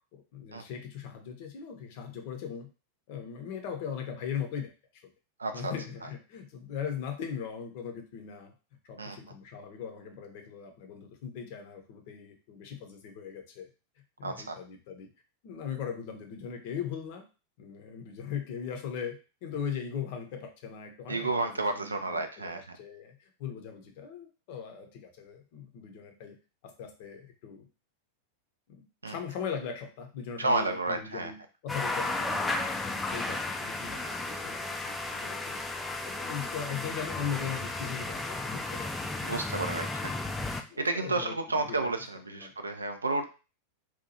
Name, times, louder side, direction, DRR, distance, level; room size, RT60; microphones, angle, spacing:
voice 1, 0.1-2.7 3.1-4.7 5.5-8.5 8.8-13.7 14.2-15.1 15.4-17.3 17.6-26.4 26.6-27.7 28.7-35.7 36.1-39.0 39.5-39.7 40.7-42.0 42.3-42.5, left 7 dB, 50° left, 5 dB, 0.6 m, -39 dB
voice 2, 5.4-5.7 9.0-9.2 14.2-14.6 21.1-22.8 29.0-29.1 30.4-31.3 39.2-40.1 40.4-43.3, right 3 dB, 75° right, 7 dB, 0.3 m, -31 dB
sound 1, 31.7-40.6, left 2 dB, 10° left, 0.3 m, -34 dB
2.8 x 2.3 x 2.7 m, 0.33 s
figure-of-eight pair, 90°, 0 cm